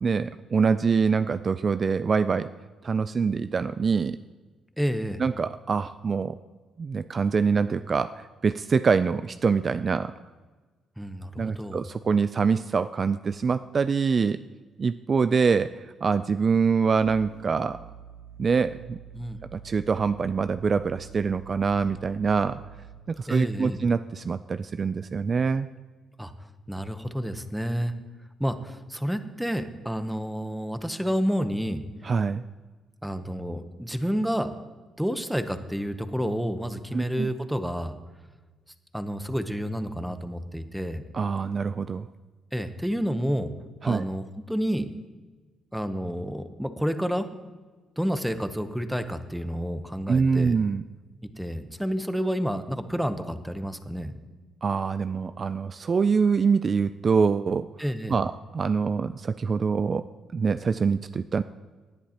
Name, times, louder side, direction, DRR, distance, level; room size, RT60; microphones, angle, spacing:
voice 1, 0.0-2.5 2.8-4.2 5.2-6.4 6.8-10.1 11.4-14.4 14.8-17.8 18.4-19.0 19.5-22.6 23.1-25.7 32.0-32.4 36.9-37.3 41.1-42.1 43.8-44.0 50.1-50.8 54.6-57.7 58.1-60.1 60.3-61.4, right 5 dB, 40° right, 13 dB, 0.3 m, -25 dB
voice 2, 4.8-5.2 11.0-11.8 19.1-19.4 23.3-23.8 26.2-26.3 26.7-27.9 28.4-31.8 33.0-34.5 35.0-38.0 38.9-41.0 42.5-43.5 43.8-44.9 45.7-47.3 48.0-50.5 51.4-54.2 57.8-58.2, equal, ahead, 9 dB, 0.9 m, -29 dB
sound 1, 17.0-23.2, right 8 dB, 55° right, 1.9 m, -47 dB
18.5 x 10.0 x 2.9 m, 1.3 s
cardioid pair, 90°, 0 cm